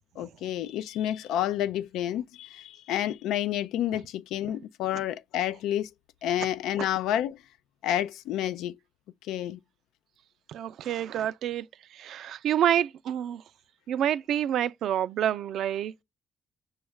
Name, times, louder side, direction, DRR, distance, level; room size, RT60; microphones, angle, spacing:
voice 1, 0.2-5.9 6.2-7.4 7.8-8.8 9.3-9.6, left 11 dB, 90° left, 0.3 m, -29 dB
voice 2, 10.5-11.6 12.0-13.4 13.9-16.0, right 10 dB, 70° right, 0.4 m, -28 dB
6.2 x 2.3 x 3.2 m
cardioid pair, 100°, 0 cm